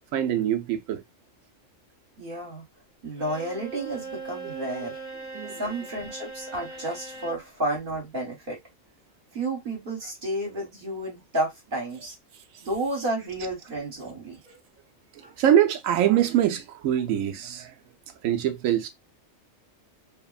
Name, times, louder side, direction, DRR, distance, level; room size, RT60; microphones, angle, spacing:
voice 1, 0.1-1.0 5.3-5.6 15.1-17.7 18.2-18.9, right 10 dB, 85° right, 1.0 m, -24 dB
voice 2, 2.2-2.6 3.0-5.0 5.6-8.6 9.3-12.1 12.6-14.6 15.2-15.3, right 1 dB, 45° right, 1.4 m, -31 dB
Bowed string instrument, 3.2-7.5, right 3 dB, 25° right, 0.9 m, -40 dB
3.3 x 2.1 x 2.3 m
omnidirectional pair, 1.3 m